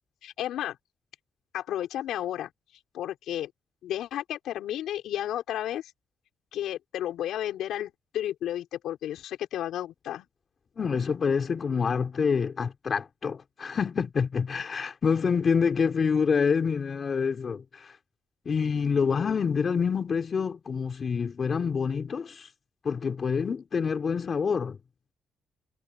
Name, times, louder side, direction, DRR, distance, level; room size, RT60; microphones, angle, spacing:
voice 1, 0.2-0.8 1.5-2.5 2.9-3.5 3.8-5.9 6.5-10.3, left 12 dB, 80° left, 6.0 m, -32 dB
voice 2, 10.8-18.0 18.5-22.5 22.8-24.8, left 6 dB, 45° left, 4.0 m, -27 dB
cardioid pair, 90°, 0 cm